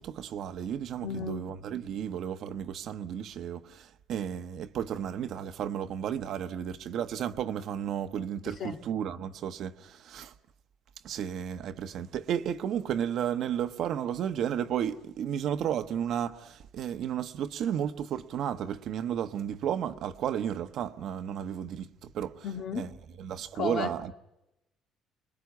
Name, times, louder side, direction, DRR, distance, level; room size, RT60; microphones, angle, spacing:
voice 1, 0.0-10.3 11.0-22.4 22.7-22.9 23.2-24.1, right 9 dB, 60° right, 1.1 m, -33 dB
voice 2, 1.0-1.5 8.5-8.8 22.4-23.0 23.5-24.0, left 6 dB, 55° left, 2.1 m, -34 dB
29.5 x 20.5 x 9.5 m
cardioid pair, 130°, 0 cm